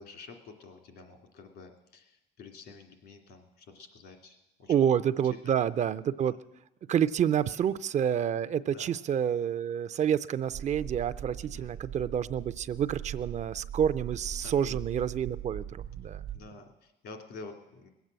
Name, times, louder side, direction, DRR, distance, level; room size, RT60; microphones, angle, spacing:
voice 1, 0.0-4.8 5.4-5.6 6.2-6.4 7.5-7.6 8.7-8.9 11.5-11.7 14.4-14.8 16.3-17.9, left 3 dB, 80° left, 4 dB, 2.5 m, -49 dB
voice 2, 4.7-6.3 6.9-16.2, right 9 dB, 45° right, 15 dB, 0.4 m, -28 dB
sound 1, 10.5-16.4, right 9 dB, 80° right, 0.9 m, -41 dB
20.5 x 8.1 x 7.5 m, 0.94 s
cardioid pair, 110°, 17 cm